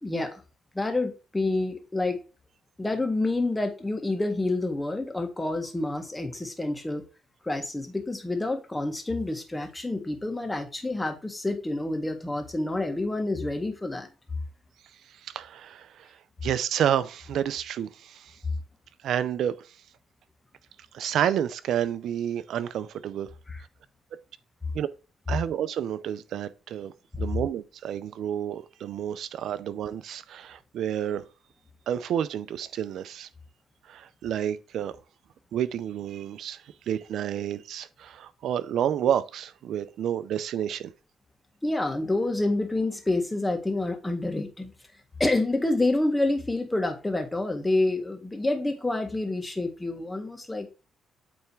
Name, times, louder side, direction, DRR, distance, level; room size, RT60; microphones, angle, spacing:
voice 1, 0.0-0.4 0.8-2.2 2.8-7.1 7.4-14.1 23.5-23.6 41.6-44.7 45.2-50.7, left 2 dB, 15° left, 1.7 m, -28 dB
voice 2, 15.2-16.2 16.4-18.4 19.0-19.7 20.9-23.3 24.7-24.9 25.3-31.2 31.9-33.3 33.9-35.0 35.5-40.9, right 9 dB, 75° right, 0.6 m, -30 dB
8.6 x 3.5 x 4.6 m
cardioid pair, 90°, 0 cm